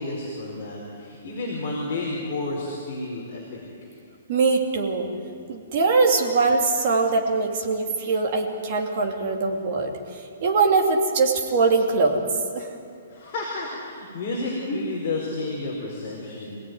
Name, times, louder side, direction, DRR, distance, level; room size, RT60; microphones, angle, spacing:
voice 1, 0.0-3.6 13.1-16.6, left 2 dB, 30° left, -4 dB, 4.7 m, -31 dB
voice 2, 4.3-5.1 5.5-12.2 12.5-12.7, right 4 dB, 35° right, 1 dB, 2.7 m, -22 dB
26.5 x 17.5 x 9.5 m, 2.3 s
hypercardioid pair, 180°, 0 cm